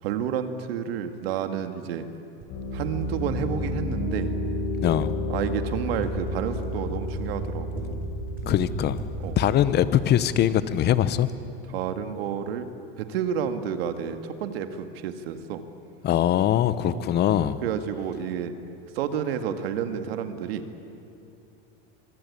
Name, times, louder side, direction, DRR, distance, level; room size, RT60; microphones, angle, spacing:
voice 1, 0.0-2.1 2.7-4.3 5.3-8.0 9.2-9.4 11.7-12.7 13.0-15.6 16.9-17.0 17.6-18.5 18.9-20.6, right 8 dB, 75° right, 8 dB, 2.0 m, -30 dB
sound 1, 2.4-11.1, right 2 dB, 30° right, 6.6 m, -41 dB
Piano, 2.5-10.0, left 1 dB, 50° left, 5.8 m, -31 dB
voice 2, 4.8-5.1 8.5-9.0 9.3-11.3 16.0-17.6, left 11 dB, 35° left, 14 dB, 1.1 m, -22 dB
25.0 x 23.0 x 8.5 m, 2.7 s
supercardioid pair, 130°, 30 cm